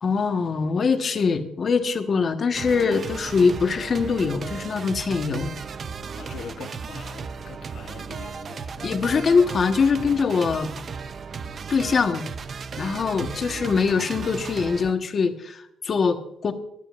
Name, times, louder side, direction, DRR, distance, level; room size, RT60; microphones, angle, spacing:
voice 1, 0.0-5.5 8.8-10.7 11.7-12.3 12.8-16.5, left 5 dB, 45° left, 6 dB, 1.4 m, -23 dB
sound 1, 2.5-14.9, right 5 dB, 50° right, 0.6 m, -35 dB
voice 2, 6.1-9.0 12.8-13.1, left 7 dB, 70° left, 8 dB, 1.0 m, -43 dB
24.5 x 11.5 x 2.6 m, 0.79 s
cardioid pair, 90°, 0 cm